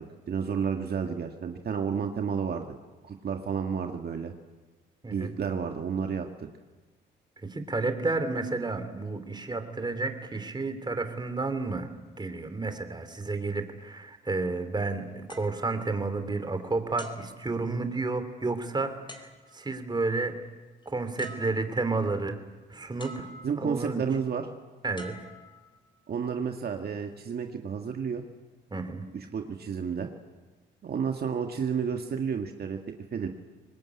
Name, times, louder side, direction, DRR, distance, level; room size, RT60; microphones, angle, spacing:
voice 1, 0.3-2.8 3.0-4.3 5.1-6.5 23.4-24.5 26.1-28.2 29.1-30.1 30.8-32.8 33.1-33.3, right 6 dB, 55° right, 4 dB, 1.9 m, -31 dB
voice 2, 7.4-11.9 12.2-19.3 19.5-20.4 20.8-22.4 22.7-23.3 23.6-24.0 24.8-25.2 28.7-29.0, right 3 dB, 20° right, 8 dB, 3.2 m, -31 dB
sound 1, 15.3-16.5 17.0-18.1 19.1-19.8 20.8-20.9 21.2-22.0 23.0-23.8 25.0-26.1 26.8-27.0, left 1 dB, 25° left, 4.2 m, -48 dB
24.0 x 19.5 x 9.8 m, 1.3 s
cardioid pair, 90°, 20 cm